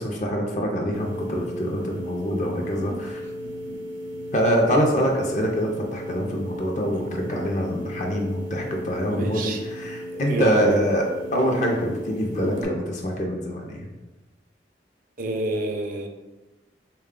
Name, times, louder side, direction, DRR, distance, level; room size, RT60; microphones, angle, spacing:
voice 1, 0.0-3.3 4.3-13.9, equal, 40° left, 1 dB, 0.5 m, -25 dB
sound 1, 0.9-12.6, equal, 85° right, 0.7 m, -35 dB
voice 2, 9.1-9.6 10.1-10.9 15.2-16.1, right 1 dB, 50° right, 4 dB, 0.4 m, -28 dB
3.6 x 2.2 x 3.6 m, 1.1 s
head